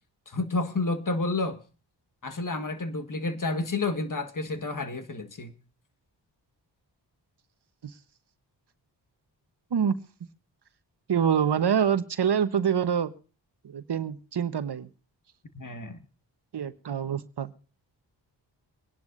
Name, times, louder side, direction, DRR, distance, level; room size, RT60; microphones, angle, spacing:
voice 1, 0.3-1.6 2.2-5.5 15.5-16.0, left 3 dB, 45° left, 1.7 m, -30 dB
voice 2, 11.1-13.1 13.6-14.9 16.5-17.5, right 8 dB, 60° right, 1.1 m, -26 dB
24.5 x 10.5 x 2.6 m
cardioid pair, 45°, 45 cm